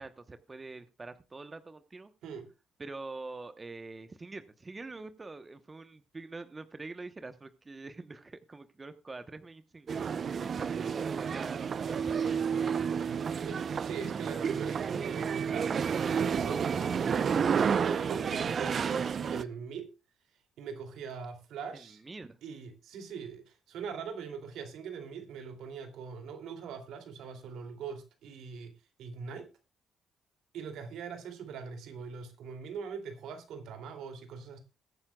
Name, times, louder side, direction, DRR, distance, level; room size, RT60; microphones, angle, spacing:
voice 1, 0.0-2.1 2.8-12.9 21.7-22.4, right 3 dB, 25° right, 0.9 m, -45 dB
sound 1, 9.9-19.4, right 6 dB, 50° right, 0.6 m, -30 dB
voice 2, 13.4-15.8 16.1-19.9 20.6-22.0 22.4-29.5 30.5-34.6, right 6 dB, 80° right, 2.6 m, -42 dB
21.0 x 9.6 x 2.3 m
cardioid pair, 90°, 0 cm